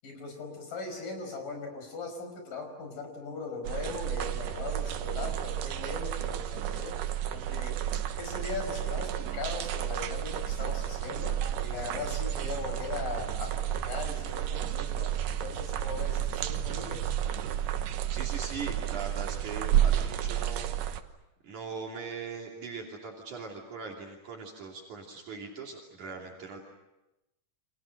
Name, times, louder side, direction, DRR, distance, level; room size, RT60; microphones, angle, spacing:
voice 1, 0.0-7.0 7.3-7.8 8.2-17.0, left 4 dB, 90° left, 5 dB, 6.9 m, -39 dB
sound 1, 3.6-21.0, right 11 dB, 85° right, 2.8 m, -31 dB
voice 2, 18.1-20.7 21.4-26.6, right 5 dB, 65° right, -1 dB, 4.3 m, -40 dB
29.5 x 26.0 x 6.6 m, 0.95 s
omnidirectional pair, 3.7 m